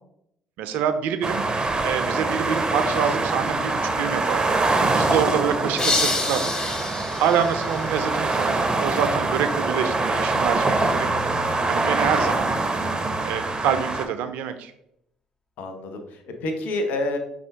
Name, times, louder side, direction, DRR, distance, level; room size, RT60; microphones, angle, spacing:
voice 1, 0.6-1.4 1.8-6.5 7.2-11.1 11.7-12.5 13.2-14.7, right 8 dB, 70° right, 10 dB, 0.4 m, -26 dB
sound 1, 1.2-14.0, right 2 dB, 25° right, 0.6 m, -24 dB
sound 2, 5.8-8.6, left 3 dB, 25° left, 0.7 m, -28 dB
voice 2, 15.6-17.2, left 2 dB, 65° left, 6 dB, 0.7 m, -28 dB
5.1 x 2.4 x 3.4 m, 0.74 s
hypercardioid pair, 50°, 3 cm